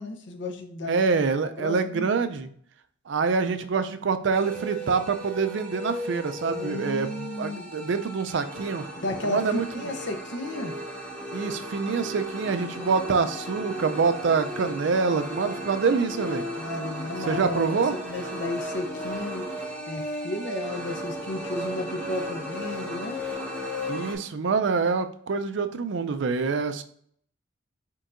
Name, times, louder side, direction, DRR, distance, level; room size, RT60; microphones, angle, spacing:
voice 1, 0.0-1.0 1.6-2.1 6.5-7.7 9.0-10.7 12.8-12.9 16.6-19.5 19.9-23.2, left 2 dB, 65° left, 5 dB, 0.7 m, -33 dB
voice 2, 0.9-2.5 3.1-8.8 9.2-9.7 11.3-16.5 17.3-17.9 23.9-26.8, right 5 dB, 70° right, 9 dB, 0.4 m, -26 dB
sound 1, 4.3-24.1, equal, 10° left, 0.8 m, -35 dB
4.5 x 4.5 x 2.5 m, 0.62 s
head